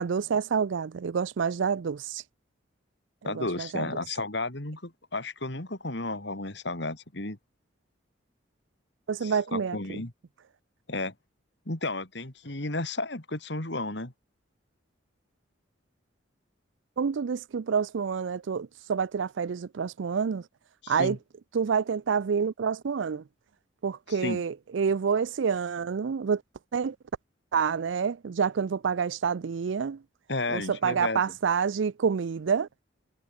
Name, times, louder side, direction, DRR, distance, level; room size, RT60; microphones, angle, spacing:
voice 1, 0.0-2.2 3.2-3.9 9.1-10.0 17.0-20.5 20.9-21.2 21.5-23.2 23.8-26.4 26.7-27.0 27.5-30.0 30.5-32.7, right 6 dB, 75° right, 0.4 m, -28 dB
voice 2, 3.2-7.4 9.2-10.1 10.9-11.1 11.7-14.1 20.8-21.2 24.1-24.4 30.3-31.2, left 2 dB, 60° left, 2.9 m, -33 dB
head